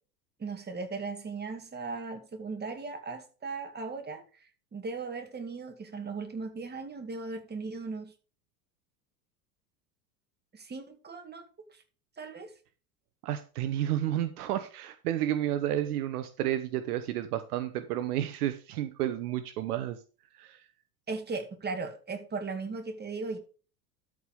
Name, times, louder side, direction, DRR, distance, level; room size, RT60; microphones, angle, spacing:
voice 1, 0.4-8.1 10.5-11.5 12.2-12.5 21.1-23.4, right 4 dB, 20° right, 6 dB, 2.2 m, -37 dB
voice 2, 13.2-20.0 20.3-20.6, right 12 dB, 65° right, 12 dB, 1.0 m, -31 dB
12.5 x 4.9 x 5.2 m, 0.36 s
hypercardioid pair, 80°, 49 cm